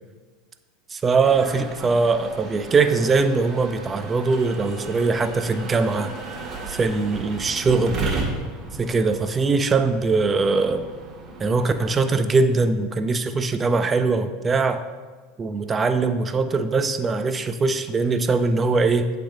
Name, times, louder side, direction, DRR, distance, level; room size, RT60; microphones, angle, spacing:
voice 1, 1.0-6.1 6.7-8.1 8.8-10.9 11.4-14.8 15.4-19.1, right 4 dB, 25° right, 9 dB, 0.4 m, -21 dB
sound 1, 1.2-12.0, right 3 dB, 45° right, 1.2 m, -34 dB
7.7 x 3.4 x 3.7 m, 1.4 s
hypercardioid pair, 100°, 0 cm